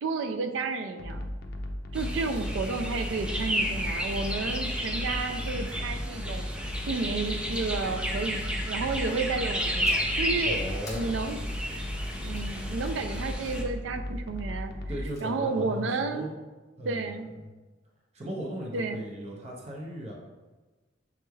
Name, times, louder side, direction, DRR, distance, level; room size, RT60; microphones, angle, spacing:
voice 1, 0.0-1.3 1.9-10.6 10.9-11.4 12.2-14.7 15.2-16.3 16.8-17.3 18.7-19.1, right 4 dB, 70° right, 8 dB, 0.4 m, -32 dB
sound 1, 1.0-15.1, left 1 dB, 55° left, 0.5 m, -36 dB
sound 2, 1.9-13.6, equal, 5° right, 0.4 m, -33 dB
sound 3, 9.8-10.2 10.9-12.5 14.7-15.3, left 2 dB, 15° left, 1.0 m, -50 dB
voice 2, 10.4-11.0 14.9-16.3 16.8-17.5 18.1-20.1, equal, 35° right, -3 dB, 0.7 m, -37 dB
6.9 x 3.1 x 2.3 m, 1.2 s
head